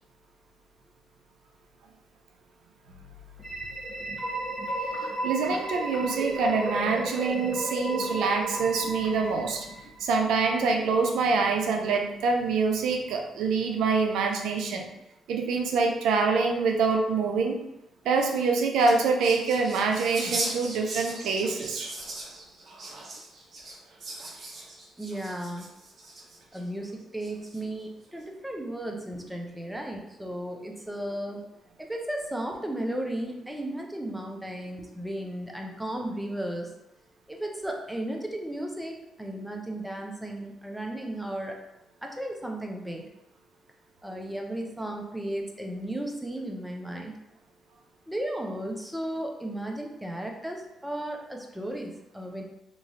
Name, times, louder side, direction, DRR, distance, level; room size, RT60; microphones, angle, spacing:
sound 1, 3.4-10.2, right 1 dB, 20° right, 1.0 m, -33 dB
voice 1, 5.2-9.7 10.0-14.9 15.3-17.6 18.1-21.9, right 4 dB, 85° right, 3 dB, 0.4 m, -25 dB
sound 2, 18.2-26.6 27.2-27.8, right 2 dB, 50° right, 0.7 m, -38 dB
voice 2, 25.0-25.7 26.5-31.4 31.8-36.7 37.3-41.6 42.0-43.1 44.0-47.2 48.1-52.4, right 1 dB, 5° right, 1 dB, 0.5 m, -35 dB
3.0 x 2.4 x 2.6 m, 0.87 s
cardioid pair, 90°, 0 cm